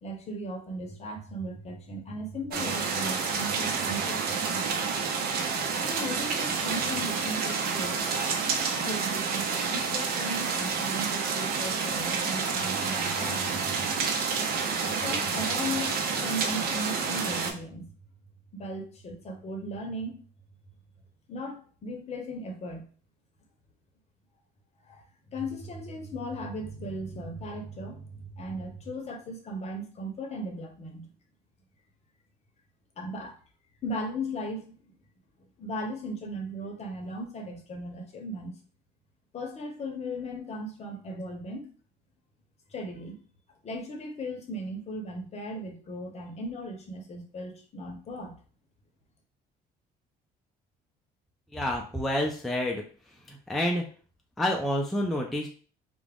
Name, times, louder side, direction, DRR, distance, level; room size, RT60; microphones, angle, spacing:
voice 1, 0.0-4.8 5.8-8.2 8.8-13.5 15.0-17.9 18.5-20.1 21.3-22.9 24.9-25.0 25.3-31.1 33.0-33.4 33.8-34.9 35.6-38.6 39.3-41.7 42.7-43.2 43.6-48.4, equal, 40° left, 4 dB, 0.7 m, -37 dB
sound 1, 2.5-17.5, right 5 dB, 65° right, 0.5 m, -29 dB
voice 2, 51.5-52.8 53.3-53.8 54.4-55.5, left 1 dB, ahead, 0 dB, 0.4 m, -28 dB
2.3 x 2.0 x 3.4 m, 0.41 s
cardioid pair, 110°, 17 cm